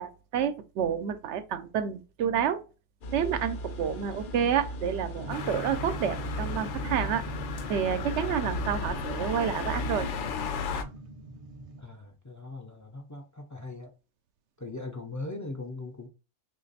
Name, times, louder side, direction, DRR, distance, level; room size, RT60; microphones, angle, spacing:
voice 1, 0.0-2.6 3.1-7.2 7.7-10.1, right 8 dB, 80° right, 0.9 m, -29 dB
sound 1, 3.0-10.3, equal, 55° left, 0.7 m, -39 dB
sound 2, 5.2-11.8, right 2 dB, 40° right, 0.5 m, -42 dB
sound 3, 5.3-10.8, left 5 dB, 85° left, 0.9 m, -35 dB
voice 2, 11.8-13.9 14.6-16.1, left 2 dB, 30° left, 0.3 m, -40 dB
3.2 x 2.5 x 3.9 m
omnidirectional pair, 1.2 m